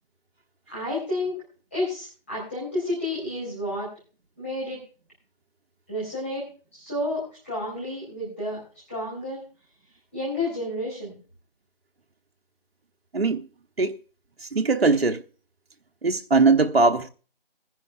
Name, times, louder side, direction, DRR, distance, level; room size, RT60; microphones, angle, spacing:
voice 1, 0.7-1.4 1.7-3.9 4.4-4.8 5.9-6.5 6.7-8.6 8.9-9.4 10.1-11.2, left 1 dB, 15° left, 3.8 m, -30 dB
voice 2, 13.1-13.5 13.8-14.0 14.4-15.2 16.0-17.1, right 3 dB, 85° right, 1.0 m, -20 dB
21.5 x 10.5 x 2.4 m
figure-of-eight pair, 180°, 29 cm